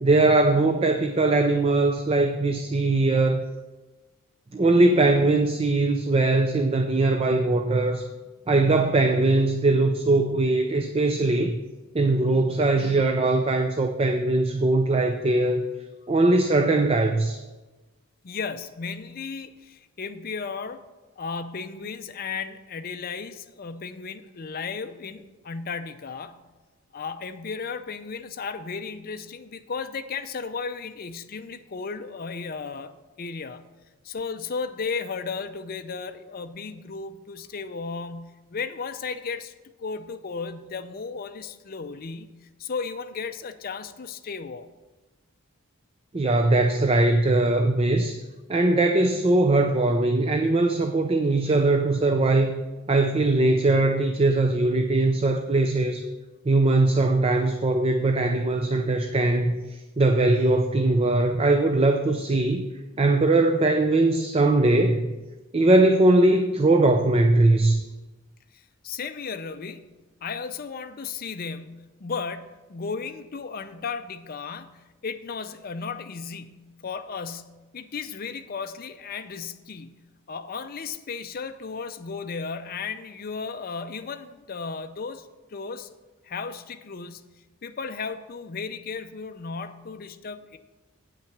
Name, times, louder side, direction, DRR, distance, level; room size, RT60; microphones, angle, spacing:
voice 1, 0.0-3.5 4.5-8.0 8.5-11.6 11.9-15.7 16.1-17.4 46.1-48.2 48.5-52.6 52.9-56.1 56.5-62.7 63.0-65.1 65.5-67.9, right 2 dB, 25° right, 6 dB, 0.4 m, -21 dB
voice 2, 18.2-20.8 21.2-26.4 26.9-33.7 34.0-39.5 39.8-44.7 68.5-85.9 86.2-90.6, left 5 dB, 40° left, 9 dB, 0.5 m, -35 dB
8.8 x 5.9 x 5.9 m, 1.1 s
head